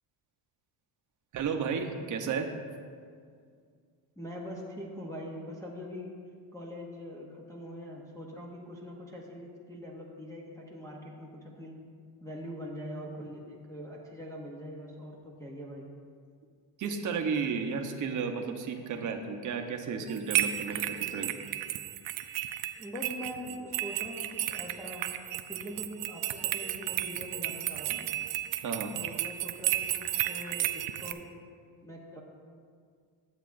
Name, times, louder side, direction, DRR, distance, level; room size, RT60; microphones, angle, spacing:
voice 1, 1.3-2.5 16.8-21.3 28.6-28.9, right 5 dB, 40° right, 4 dB, 0.7 m, -33 dB
voice 2, 4.2-6.1 6.5-11.7 12.2-15.9 22.8-25.0 25.4-28.1 28.9-31.3 31.8-32.2, equal, 5° left, -4 dB, 0.6 m, -43 dB
sound 1, 20.1-31.1, right 13 dB, 90° right, 0.6 m, -33 dB
11.0 x 8.1 x 2.5 m, 2.1 s
cardioid pair, 155°, 48 cm